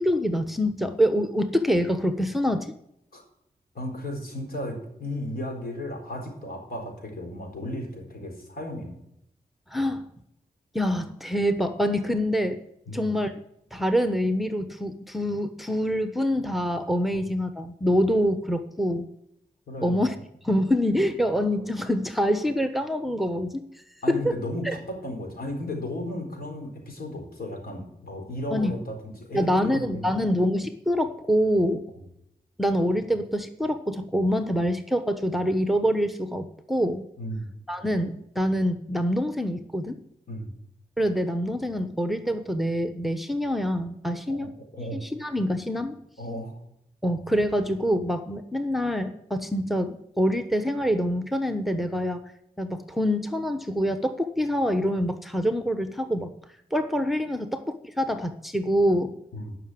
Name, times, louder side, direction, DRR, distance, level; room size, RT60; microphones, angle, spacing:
voice 1, 0.0-2.7 9.7-10.0 10.7-12.6 12.9-13.3 13.7-19.1 19.8-20.1 20.4-23.6 24.1-24.3 24.6-24.8 28.5-28.7 29.3-31.8 32.6-37.0 37.7-40.0 41.0-44.5 44.9-46.0 47.0-52.2 52.6-56.3 56.7-59.1, equal, ahead, 8 dB, 1.1 m, -25 dB
voice 2, 3.7-9.0 12.9-13.1 19.7-20.1 24.0-30.3 37.2-37.5 40.3-40.5 44.3-45.1 46.2-46.6 59.3-59.6, left 1 dB, 70° left, 2 dB, 4.2 m, -34 dB
11.0 x 6.0 x 8.0 m, 0.79 s
cardioid pair, 50°, 16 cm